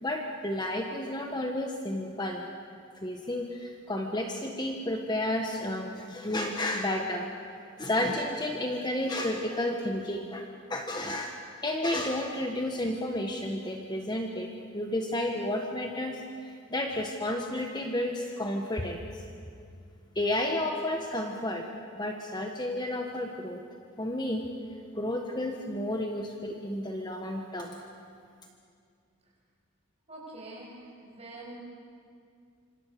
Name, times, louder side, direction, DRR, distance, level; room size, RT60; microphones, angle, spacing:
voice 1, 0.0-2.4 3.0-7.2 7.8-10.4 10.7-11.3 11.6-19.0 20.1-21.7 22.0-23.6 24.0-24.5 24.9-27.8, left 1 dB, 20° left, 2 dB, 1.4 m, -31 dB
voice 2, 30.1-31.6, right 2 dB, 30° right, -2 dB, 6.6 m, -45 dB
26.5 x 26.0 x 6.8 m, 2.3 s
head